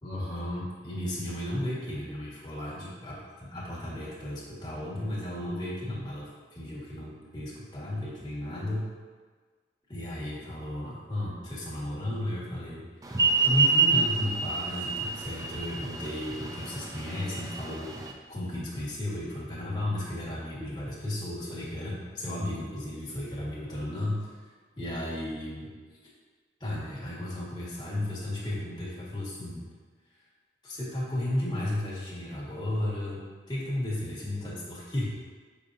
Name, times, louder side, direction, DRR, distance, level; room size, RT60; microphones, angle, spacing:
voice 1, 0.0-8.9 9.9-12.9 13.4-24.5 24.8-26.0 26.6-29.7 30.6-35.1, left 1 dB, 25° left, -6 dB, 1.4 m, -34 dB
sound 1, 13.1-18.1, right 5 dB, 20° right, 0.4 m, -27 dB
6.9 x 5.2 x 2.6 m, 1.5 s
head